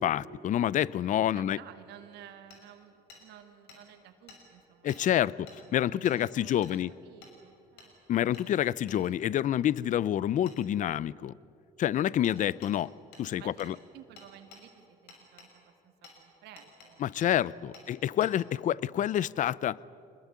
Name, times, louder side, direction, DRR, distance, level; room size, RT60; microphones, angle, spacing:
voice 1, 0.0-1.6 4.8-6.9 8.1-11.3 11.8-12.9 13.2-13.7 17.0-19.8, left 11 dB, 50° left, 22 dB, 0.5 m, -28 dB
voice 2, 1.3-5.2 5.6-6.0 6.3-6.8 7.0-8.3 13.3-17.7 18.5-18.6, right 10 dB, 85° right, 6 dB, 2.1 m, -54 dB
Hammer, 2.5-2.6 3.1-3.2 3.7-3.8 4.3-4.4 4.9-5.0 5.5-5.6 6.0-6.2 6.6-6.8 7.2-7.3 7.8-7.9 8.3-8.5 8.9-9.0 10.5-10.6 12.2-12.4 12.6-12.7 13.1-13.3 13.6-13.7 14.2-14.6 15.1-15.5 16.0-16.2 16.6-16.9 17.2-17.3 17.7-17.9 18.2-18.3, left 5 dB, 90° left, 6.1 m, -52 dB
25.0 x 20.5 x 9.5 m, 2.6 s
cardioid pair, 110°, 17 cm